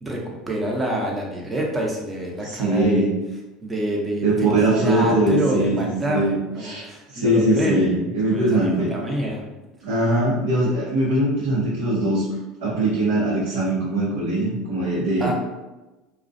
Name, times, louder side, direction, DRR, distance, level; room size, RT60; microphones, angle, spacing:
voice 1, 0.0-3.0 3.6-6.2 6.5-7.9 8.3-9.4 15.2-15.3, right 1 dB, 20° right, -2 dB, 0.7 m, -27 dB
voice 2, 2.4-3.2 4.2-8.9 9.8-12.3 12.6-15.3, right 1 dB, 85° right, -8 dB, 0.7 m, -21 dB
2.4 x 2.1 x 2.5 m, 1.1 s
hypercardioid pair, 90°, 0 cm